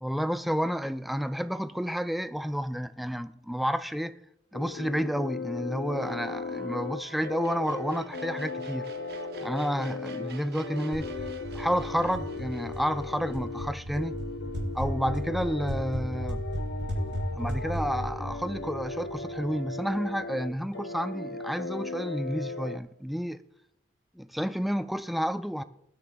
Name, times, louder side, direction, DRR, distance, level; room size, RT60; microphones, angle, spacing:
voice 1, 0.0-4.1 4.5-8.9 9.4-11.3 11.5-14.2 14.7-16.4 17.3-23.4 24.2-25.6, equal, ahead, 0.3 m, -30 dB
sound 1, 4.5-22.8, left 3 dB, 65° left, 0.4 m, -37 dB
sound 2, 5.9-15.1, right 3 dB, 60° right, 0.8 m, -47 dB
sound 3, 10.9-19.6, equal, 80° right, 4.3 m, -35 dB
21.5 x 9.6 x 2.3 m
head